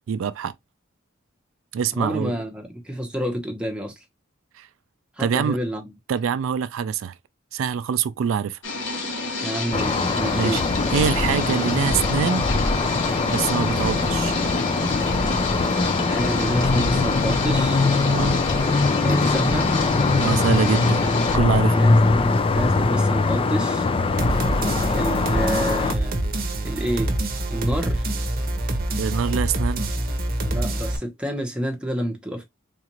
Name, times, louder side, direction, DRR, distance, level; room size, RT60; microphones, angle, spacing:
voice 1, 0.1-0.5 1.7-2.4 4.6-4.7 5.2-5.6 6.1-7.1 7.5-8.6 10.3-10.6 10.9-12.5 13.3-14.4 18.0-18.4 20.1-21.1 21.3-21.8 29.0-29.9, right 7 dB, 75° right, 0.3 m, -24 dB
voice 2, 1.9-4.0 5.2-5.9 9.4-10.7 16.0-17.8 19.0-19.7 21.7-23.9 24.9-26.2 26.6-27.2 27.5-28.1 30.4-32.4, equal, 5° right, 0.9 m, -29 dB
sound 1, 8.6-21.4, left 3 dB, 65° left, 1.4 m, -30 dB
sound 2, 9.7-25.9, left 3 dB, 25° left, 0.4 m, -21 dB
sound 3, 24.2-31.0, right 1 dB, 50° right, 0.8 m, -26 dB
3.8 x 2.5 x 2.9 m
head